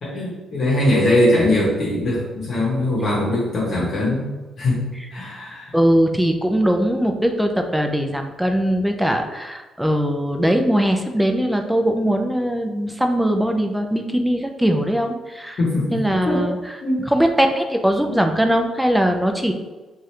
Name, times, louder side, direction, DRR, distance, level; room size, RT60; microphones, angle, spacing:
voice 1, 0.0-4.3 4.6-5.7 15.6-16.4 16.8-17.0, left 1 dB, 55° left, -7 dB, 0.9 m, -21 dB
voice 2, 5.7-15.6 15.9-16.8 17.1-19.5, equal, 5° right, 4 dB, 0.4 m, -20 dB
2.7 x 2.4 x 3.2 m, 1.2 s
cardioid pair, 90°, 0 cm